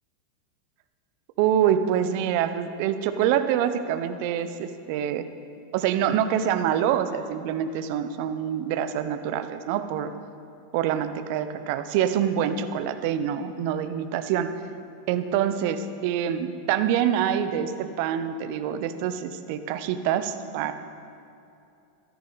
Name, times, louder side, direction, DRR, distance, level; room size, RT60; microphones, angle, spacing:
voice 1, 1.4-5.2 5.7-10.1 10.7-14.5 15.1-20.7, right 9 dB, 55° right, 10 dB, 0.9 m, -26 dB
15.5 x 13.5 x 4.2 m, 2.6 s
figure-of-eight pair, 90°, 0 cm